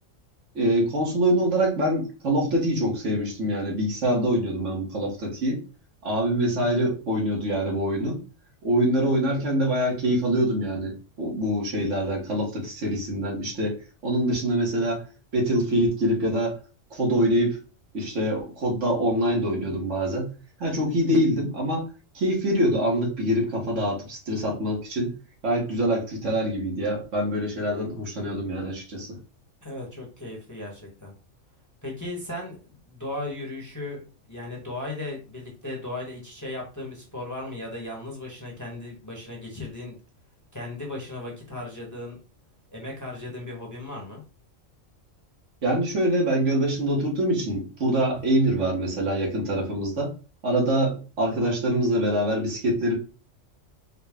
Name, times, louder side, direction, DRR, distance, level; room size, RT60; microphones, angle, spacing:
voice 1, 0.5-5.6 6.0-8.2 8.6-13.8 14.0-15.0 15.3-16.6 16.9-17.6 17.9-20.3 20.6-21.9 22.1-25.1 25.4-29.2 45.6-50.1 50.4-52.9, right 1 dB, 70° right, -1 dB, 1.6 m, -24 dB
voice 2, 29.6-31.1 31.8-34.0 34.3-40.0 40.5-42.2 42.7-44.2, left 2 dB, 15° left, -2 dB, 1.1 m, -36 dB
4.7 x 2.2 x 3.5 m, 0.35 s
omnidirectional pair, 1.3 m